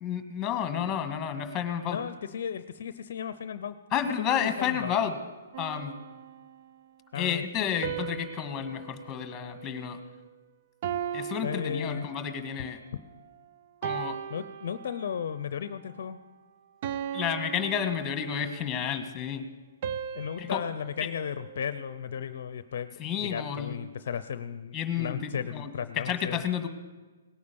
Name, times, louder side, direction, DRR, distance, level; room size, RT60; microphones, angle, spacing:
voice 1, 0.0-2.1 3.9-5.2 5.6-5.9 7.1-10.0 11.1-12.8 13.8-14.2 17.1-19.4 20.4-20.6 21.0-21.1 23.0-23.8 24.7-26.7, left 8 dB, 20° left, 8 dB, 1.7 m, -31 dB
voice 2, 1.9-3.8 4.2-4.9 7.1-7.8 11.4-12.1 14.3-16.2 20.1-26.4, left 8 dB, 60° left, 13 dB, 0.6 m, -35 dB
sound 1, 5.5-6.8 7.8-10.3 10.8-12.5 13.1-13.4 13.8-15.4 15.8-16.1 16.8-18.7 19.8-22.2, right 8 dB, 45° right, 0.6 m, -38 dB
18.0 x 9.4 x 7.0 m, 1.3 s
hypercardioid pair, 130°, 0 cm